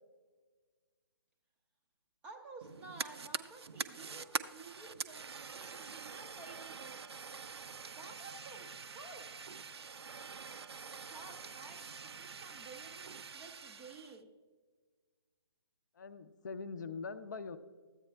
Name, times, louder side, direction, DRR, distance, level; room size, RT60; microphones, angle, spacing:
voice 1, 2.2-7.0 8.0-9.2 11.0-14.3, right 3 dB, 10° right, 3 dB, 0.4 m, -53 dB
Fire, 2.6-14.2, right 5 dB, 70° right, 0.4 m, -45 dB
voice 2, 15.9-17.6, left 4 dB, 45° left, 11 dB, 0.5 m, -43 dB
14.5 x 8.5 x 2.2 m, 1.5 s
figure-of-eight pair, 140°, 14 cm